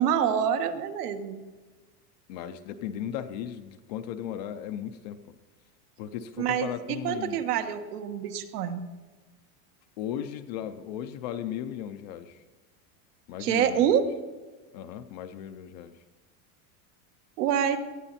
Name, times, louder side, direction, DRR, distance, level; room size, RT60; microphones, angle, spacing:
voice 1, 0.0-1.4 6.4-8.9 13.4-14.0 17.4-17.8, right 9 dB, 85° right, 7 dB, 1.7 m, -26 dB
voice 2, 2.3-5.2 6.0-7.4 10.0-12.4 13.3-14.1 14.7-15.9, left 10 dB, 30° left, 9 dB, 0.4 m, -36 dB
19.0 x 13.5 x 4.2 m, 1.3 s
supercardioid pair, 175°, 45 cm